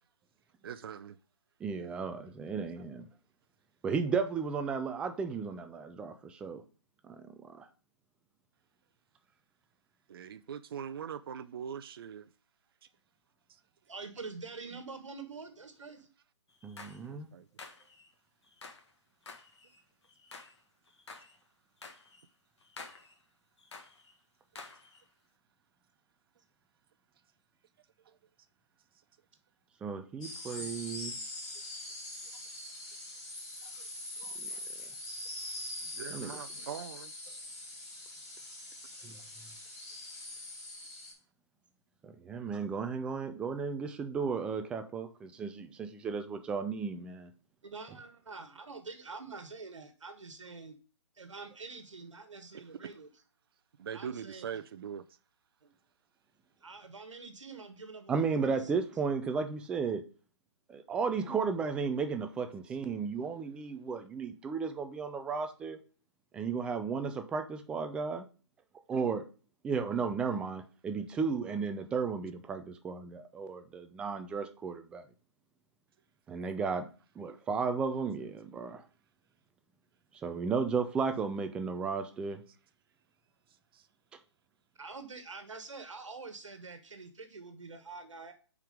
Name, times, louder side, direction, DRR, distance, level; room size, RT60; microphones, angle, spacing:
voice 1, 0.6-1.2 10.1-12.3 17.1-17.5 28.1-28.2 30.6-30.7 31.5-31.6 33.6-33.7 34.2-34.6 35.8-37.4 52.5-52.6 53.8-55.0 83.7-83.9, right 8 dB, 50° right, 0.6 m, -42 dB
voice 2, 1.6-3.0 3.8-6.6 7.0-7.7 16.6-17.3 29.8-31.2 34.4-34.5 36.1-36.3 39.0-39.2 42.0-47.3 58.1-60.0 60.7-65.8 66.3-68.3 68.9-69.2 69.6-75.0 76.3-76.9 77.2-78.8 80.1-82.4, right 5 dB, 5° right, 0.4 m, -34 dB
voice 3, 13.9-16.1 47.6-50.8 51.1-53.1 53.9-54.6 55.6-55.7 56.6-58.7 84.8-88.3, right 4 dB, 85° right, 1.3 m, -46 dB
sound 1, 16.5-17.1 17.6-18.1 18.4-18.9 19.2-20.6 20.9-21.4 21.8-22.3 22.6-23.2 23.6-24.1 24.6-25.0, left 4 dB, 65° left, 1.6 m, -50 dB
sound 2, 30.2-41.1, left 1 dB, 30° left, 4.2 m, -43 dB
5.6 x 4.7 x 5.0 m
hypercardioid pair, 150°, 15 cm